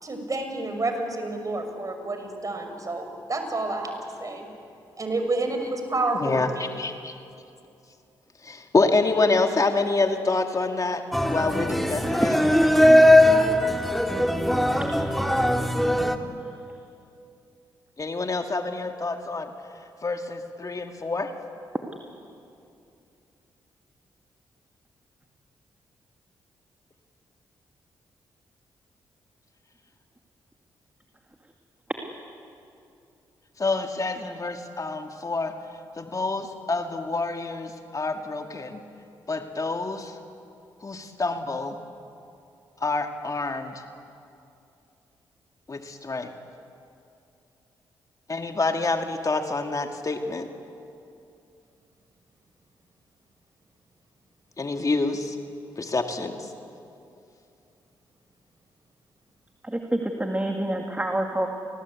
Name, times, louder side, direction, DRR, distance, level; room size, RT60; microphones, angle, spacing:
voice 1, 0.0-3.9 4.2-4.5 5.0-6.7, right 2 dB, 40° right, 5 dB, 5.5 m, -29 dB
voice 2, 6.8-7.1 8.4-11.0 11.3-12.4 18.0-19.5 20.0-21.3 33.6-35.5 36.0-38.8 39.3-40.1 40.8-41.8 42.8-43.7 45.7-46.3 48.3-50.5 54.6-55.4 55.8-56.4, left 3 dB, 40° left, 5 dB, 2.1 m, -27 dB
sound 1, 11.1-16.2, left 1 dB, ahead, 2.3 m, -19 dB
voice 3, 12.4-12.7 59.6-61.5, right 1 dB, 15° right, 3 dB, 2.4 m, -28 dB
28.5 x 19.5 x 8.4 m, 2.6 s
supercardioid pair, 50°, 9 cm